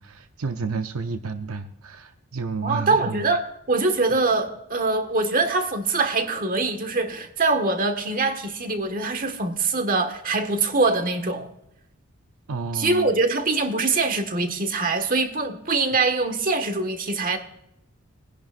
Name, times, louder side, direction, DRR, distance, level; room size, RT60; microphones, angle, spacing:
voice 1, 0.0-3.3 12.5-13.1, right 4 dB, 75° right, 0.6 m, -31 dB
voice 2, 2.6-11.5 12.7-17.4, right 3 dB, 40° right, 1.5 m, -23 dB
22.5 x 11.0 x 2.5 m
head